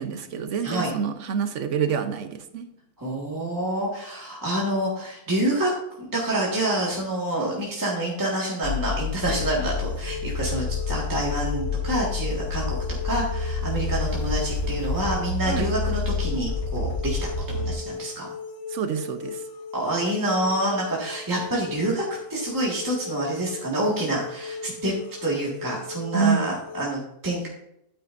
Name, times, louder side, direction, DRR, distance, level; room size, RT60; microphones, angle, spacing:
voice 1, 0.0-2.6 15.5-15.7 18.7-19.4 26.1-26.4, right 6 dB, 60° right, 9 dB, 1.0 m, -27 dB
voice 2, 3.0-5.7 6.0-12.8 13.0-18.3 19.7-22.0 22.3-24.9 25.2-27.5, right 1 dB, 10° right, -5 dB, 1.8 m, -27 dB
sound 1, 8.6-17.7, left 4 dB, 40° left, 2.2 m, -28 dB
sound 2, 9.2-26.8, left 4 dB, 65° left, 1.2 m, -38 dB
9.1 x 9.0 x 2.6 m, 0.78 s
omnidirectional pair, 1.6 m